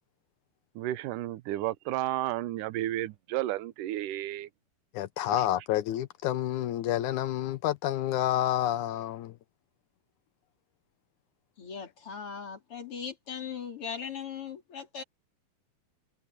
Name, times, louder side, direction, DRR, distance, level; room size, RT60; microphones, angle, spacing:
voice 1, 0.8-4.5 5.3-5.4, right 14 dB, 70° right, 2.3 m, -32 dB
voice 2, 4.9-9.3, left 13 dB, 75° left, 1.9 m, -29 dB
voice 3, 11.6-15.0, left 7 dB, 40° left, 4.1 m, -39 dB
omnidirectional pair, 4.1 m